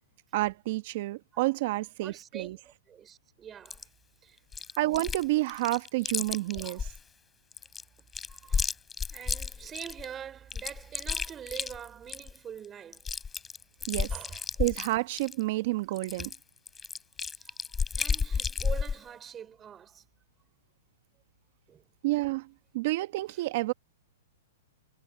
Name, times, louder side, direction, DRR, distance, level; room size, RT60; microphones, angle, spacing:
voice 1, 0.3-2.6 4.8-6.9 13.9-14.1 14.6-16.3 22.0-22.5 22.7-23.7, right 19 dB, 55° right, 1.3 m, -29 dB
voice 2, 2.0-3.9 4.2-4.4 4.7-4.8 6.5-6.9 8.0-8.7 9.1-13.1 14.1-14.4 17.3-17.6 17.9-20.0 21.7-21.8, right 8 dB, 20° right, 4.9 m, -45 dB
Chewing mastication, 3.6-3.8 4.5-5.2 5.5-7.0 7.5-10.0 10.5-12.4 12.6-12.7 12.9-15.4 16.0-19.0, left 5 dB, 15° left, 2.8 m, -32 dB
hypercardioid pair, 130°, 0 cm